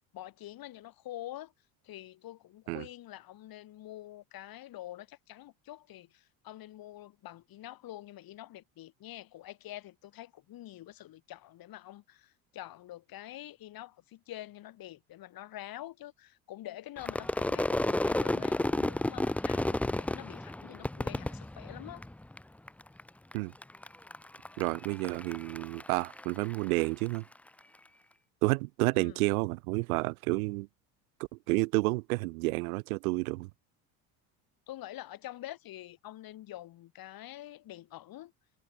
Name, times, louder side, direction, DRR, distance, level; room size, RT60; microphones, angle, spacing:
voice 1, 0.1-1.5 1.8-22.0 28.9-29.2 34.7-38.3, left 14 dB, 55° left, 4.6 m, -46 dB
Crowd / Fireworks, 17.0-22.4 22.7-23.3 23.6-27.2, left 1 dB, 5° left, 0.5 m, -32 dB
voice 2, 24.6-27.2 28.4-30.7 31.3-33.5, right 24 dB, 85° right, 1.1 m, -30 dB
supercardioid pair, 90°, 41 cm